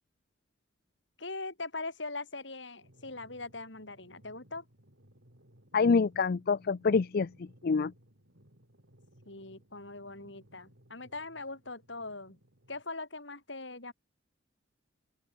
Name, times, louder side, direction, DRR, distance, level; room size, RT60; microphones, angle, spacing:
voice 1, 1.2-4.6 9.3-12.4 12.7-13.9, left 3 dB, 70° left, 7.3 m, -41 dB
sound 1, 2.8-12.8, equal, 65° right, 6.6 m, -62 dB
voice 2, 5.7-7.9, left 4 dB, 50° left, 0.4 m, -27 dB
open air
head